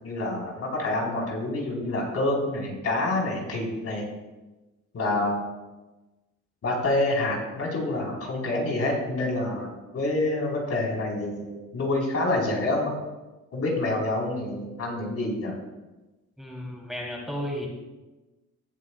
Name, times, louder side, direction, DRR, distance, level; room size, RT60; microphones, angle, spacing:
voice 1, 0.0-4.1 4.9-5.4 6.6-12.9 13.5-15.5, left 2 dB, 50° left, -2 dB, 3.6 m, -27 dB
voice 2, 16.4-17.7, equal, ahead, -2 dB, 2.7 m, -33 dB
18.5 x 8.5 x 2.2 m, 1.1 s
cardioid pair, 90°, 30 cm